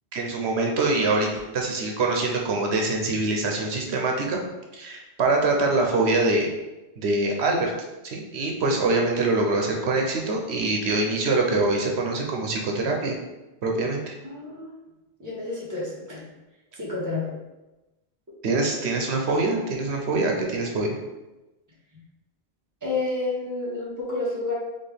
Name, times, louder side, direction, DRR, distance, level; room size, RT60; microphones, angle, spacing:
voice 1, 0.1-4.4 4.7-6.5 7.0-7.7 8.0-13.1 13.6-14.1 18.4-21.0, right 2 dB, 85° right, 1 dB, 1.0 m, -24 dB
voice 2, 14.2-14.9 15.2-16.2 16.7-17.3 22.8-24.5, left 3 dB, 15° right, -7 dB, 1.4 m, -30 dB
4.3 x 3.5 x 3.4 m, 1.0 s
omnidirectional pair, 1.1 m